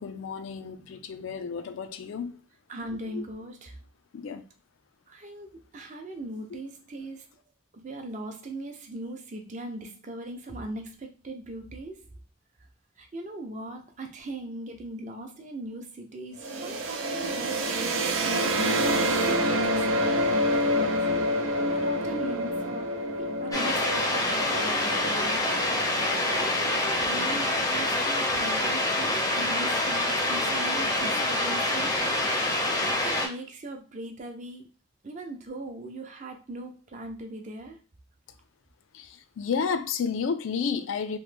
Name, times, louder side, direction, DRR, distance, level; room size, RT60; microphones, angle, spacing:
voice 1, 0.0-2.4 3.1-3.2 4.1-4.4 6.5-6.6 38.9-41.2, left 6 dB, 75° left, 0.4 m, -31 dB
voice 2, 2.7-3.7 5.1-7.2 7.7-12.1 13.0-21.0 21.4-22.9 23.2-25.4 26.3-32.3 33.0-34.7 35.0-37.8, right 1 dB, 35° right, 0.5 m, -39 dB
sound 1, 16.4-28.1, equal, 90° right, 0.5 m, -28 dB
sound 2, 23.5-33.3, left 1 dB, 15° left, 0.5 m, -26 dB
3.0 x 2.1 x 3.3 m
head